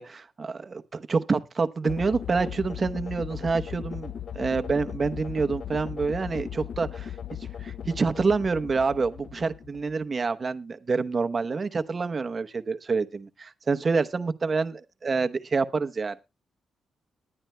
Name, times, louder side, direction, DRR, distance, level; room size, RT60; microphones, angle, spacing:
voice 1, 0.0-7.1 7.6-16.2, right 4 dB, 35° right, 0.8 m, -27 dB
sound 1, 1.8-10.0, left 9 dB, 55° left, 0.5 m, -37 dB
19.5 x 11.0 x 2.2 m
cardioid pair, 100°, 0 cm